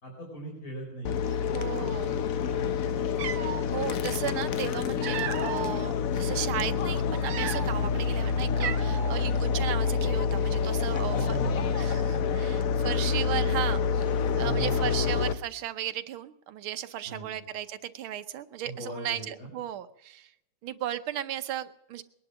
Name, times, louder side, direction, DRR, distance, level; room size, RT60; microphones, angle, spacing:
voice 1, 0.0-3.1 6.2-6.4 11.1-11.8 13.1-13.4 14.4-15.3 17.1-17.4 18.6-19.5, right 1 dB, 45° left, -2 dB, 4.9 m, -40 dB
sound 1, 1.0-15.3, left 6 dB, 60° left, 0.9 m, -27 dB
voice 2, 1.3-2.2 3.4-11.4 11.8-14.1 14.4-20.3 20.6-22.0, right 11 dB, 85° right, 10 dB, 1.7 m, -35 dB
Cat, 2.6-2.7 3.1-3.7 4.6-5.8 6.4-6.5 7.1-7.9 8.2-8.3 8.6-9.2, right 9 dB, 55° right, 1.3 m, -34 dB
20.5 x 11.0 x 6.2 m, 0.80 s
omnidirectional pair, 2.2 m